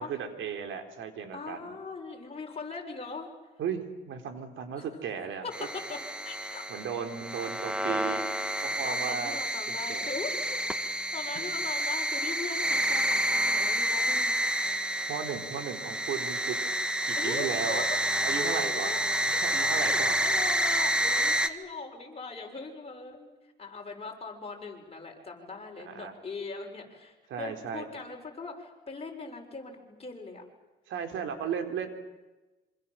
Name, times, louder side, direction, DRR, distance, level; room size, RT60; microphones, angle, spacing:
voice 1, 0.0-1.7 3.6-5.5 6.7-8.2 8.6-9.4 9.7-10.1 11.4-11.5 15.1-16.6 17.1-17.8 18.2-19.0 19.3-20.2 25.8-26.1 27.3-27.9 30.9-31.9, right 7 dB, 80° right, 7 dB, 3.9 m, -35 dB
voice 2, 1.3-3.3 4.8-4.9 5.4-5.5 5.9-6.6 7.8-8.3 8.8-14.6 17.2-18.1 18.3-19.1 19.3-19.4 19.7-23.3 23.6-30.4, left 4 dB, 30° left, 1 dB, 7.0 m, -40 dB
sound 1, 5.5-21.5, equal, 5° right, 1.8 m, -29 dB
26.5 x 26.0 x 7.6 m, 1.1 s
cardioid pair, 90°, 20 cm